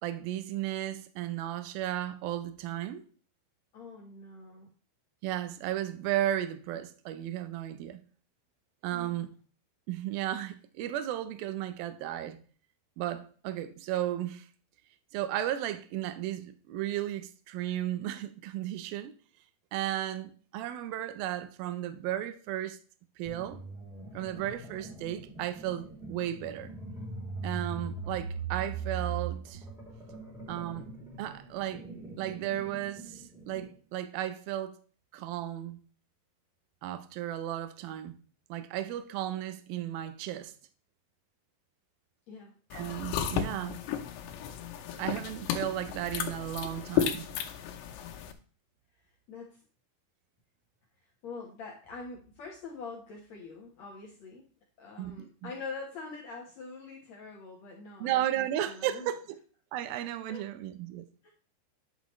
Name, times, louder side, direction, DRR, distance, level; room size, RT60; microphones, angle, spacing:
voice 1, 0.0-3.0 5.2-8.0 8.8-9.3 9.9-12.4 13.0-14.5 15.1-19.1 19.7-22.8 23.2-23.6 24.1-26.7 27.4-29.6 30.5-30.9 31.2-31.9 32.2-34.8 35.1-35.8 36.8-38.2 38.5-40.5 42.7-43.8 45.0-47.3 55.0-55.5 58.0-59.4 59.7-61.1, right 12 dB, 75° right, 2.2 m, -34 dB
voice 2, 3.7-4.7 8.9-9.2 42.3-42.6 48.9-49.6 51.0-59.1 60.3-60.5 61.2-61.3, left 4 dB, 70° left, 1.6 m, -45 dB
sound 1, 23.2-33.7, right 5 dB, ahead, 2.4 m, -41 dB
sound 2, 42.7-48.3, left 9 dB, 90° left, 3.2 m, -34 dB
10.0 x 6.4 x 3.1 m
omnidirectional pair, 4.9 m